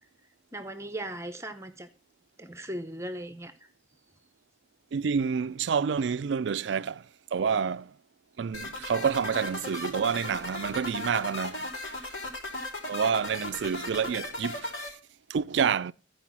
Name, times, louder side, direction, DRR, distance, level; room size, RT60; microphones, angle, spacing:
voice 1, 0.5-1.9 2.4-3.5, right 1 dB, 15° right, 0.8 m, -38 dB
voice 2, 4.9-7.1 7.3-7.9 8.4-12.0 12.9-14.7 15.3-15.9, right 6 dB, 70° right, 0.4 m, -28 dB
sound 1, 8.5-14.9, left 2 dB, 85° left, 3.6 m, -37 dB
14.0 x 5.0 x 6.1 m
head